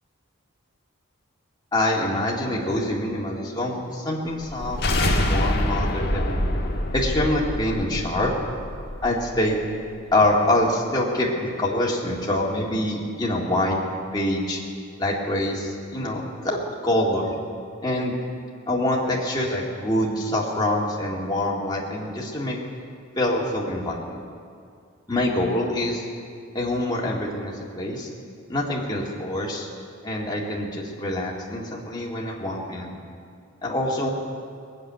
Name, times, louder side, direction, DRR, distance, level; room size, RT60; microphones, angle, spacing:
voice 1, 1.7-4.8 5.1-6.4 6.9-8.3 9.0-9.6 10.1-13.8 14.1-14.6 15.0-16.6 16.8-17.4 17.8-18.2 18.7-22.6 23.2-24.3 25.1-26.0 26.5-28.1 28.5-29.7 30.0-32.9 33.6-34.1, left 1 dB, 20° left, -4 dB, 2.1 m, -25 dB
sound 1, 4.4-9.5, left 1 dB, 50° left, 1.6 m, -26 dB
20.0 x 7.4 x 9.3 m, 2.3 s
head